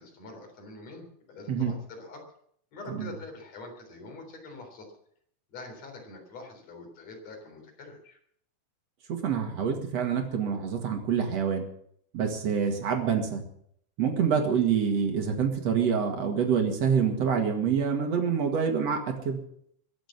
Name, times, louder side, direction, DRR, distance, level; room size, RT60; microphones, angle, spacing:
voice 1, 0.0-2.2 2.7-4.9 5.5-8.2, left 2 dB, 55° left, 2 dB, 5.0 m, -45 dB
voice 2, 9.1-11.7 12.1-13.4 14.0-19.4, right 7 dB, 55° right, 4 dB, 3.1 m, -26 dB
22.5 x 7.8 x 7.3 m, 0.68 s
omnidirectional pair, 3.5 m